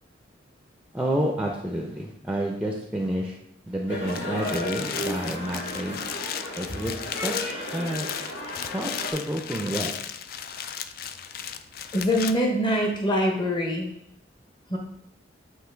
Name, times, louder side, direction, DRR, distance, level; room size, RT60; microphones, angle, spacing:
voice 1, 0.9-3.4 3.7-6.0 6.6-8.1 8.7-9.9, right 1 dB, 5° right, 0 dB, 0.5 m, -29 dB
sound 1, 3.9-9.1, left 1 dB, 75° left, 1.8 m, -34 dB
sound 2, 3.9-12.3, left 8 dB, 50° left, 0.3 m, -35 dB
voice 2, 11.9-13.9 14.7-14.8, equal, 25° left, 0 dB, 0.8 m, -24 dB
8.1 x 3.0 x 4.5 m, 0.75 s
head